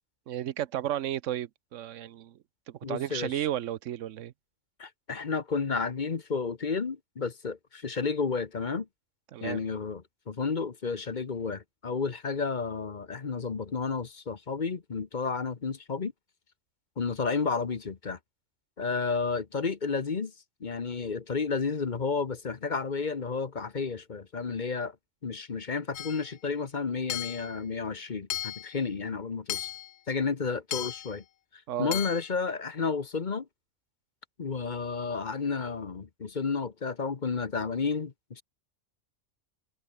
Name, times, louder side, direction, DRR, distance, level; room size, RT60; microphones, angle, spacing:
voice 1, 0.3-2.4 2.7-4.3 9.3-9.6 31.7-32.0, right 12 dB, 85° right, 1.0 m, -33 dB
voice 2, 2.8-3.5 4.8-8.9 9.4-16.1 17.0-18.2 18.8-20.3 20.6-25.0 25.2-29.7 30.1-31.2 31.5-33.5 34.4-38.4, left 5 dB, 40° left, 1.1 m, -31 dB
Hammer / Chink clink, 25.9-26.3 27.1-27.5 28.3-28.7 29.5-29.9 30.7-31.1 31.9-32.3, left 12 dB, 70° left, 0.8 m, -35 dB
omnidirectional pair, 1.3 m